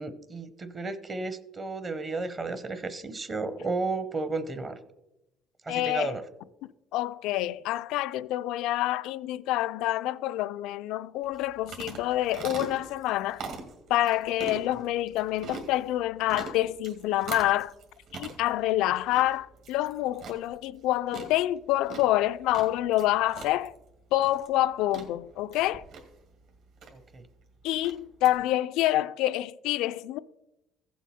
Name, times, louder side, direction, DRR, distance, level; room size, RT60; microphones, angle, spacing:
voice 1, 0.0-4.8 5.6-6.2 26.9-27.3, right 3 dB, 25° right, 0.7 m, -33 dB
voice 2, 5.7-6.1 6.9-13.4 13.9-17.7 18.1-23.7 24.1-25.8 27.6-30.2, left 15 dB, 75° left, 0.3 m, -27 dB
sound 1, 11.2-28.3, right 4 dB, 60° right, 2.0 m, -44 dB
15.5 x 7.2 x 4.2 m
cardioid pair, 145°, 0 cm